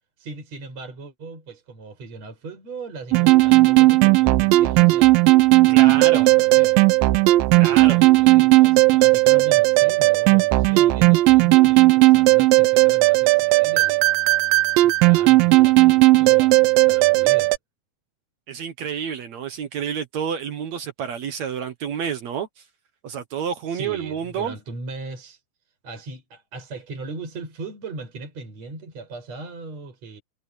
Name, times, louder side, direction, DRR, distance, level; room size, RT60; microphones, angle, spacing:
voice 1, 0.2-5.3 5.6-6.8 7.6-14.0 14.8-17.5 23.6-25.4 25.8-30.2, right 3 dB, 40° right, 7.4 m, -38 dB
sound 1, 3.1-17.6, right 20 dB, 80° right, 2.2 m, -15 dB
voice 2, 5.7-6.3 7.5-8.1 18.5-22.5 23.0-24.5, right 7 dB, 60° right, 1.9 m, -29 dB
omnidirectional pair, 4.6 m